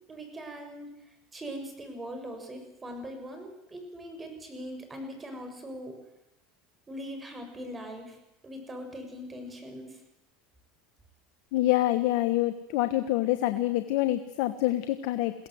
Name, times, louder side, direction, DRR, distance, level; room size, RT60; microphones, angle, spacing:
voice 1, 0.1-0.9 1.3-6.0 6.9-8.2 8.4-10.0, equal, 20° right, 5 dB, 6.7 m, -41 dB
voice 2, 11.5-15.3, left 15 dB, 70° left, 11 dB, 1.2 m, -26 dB
22.5 x 16.5 x 7.9 m, 0.94 s
hypercardioid pair, 95°, 0 cm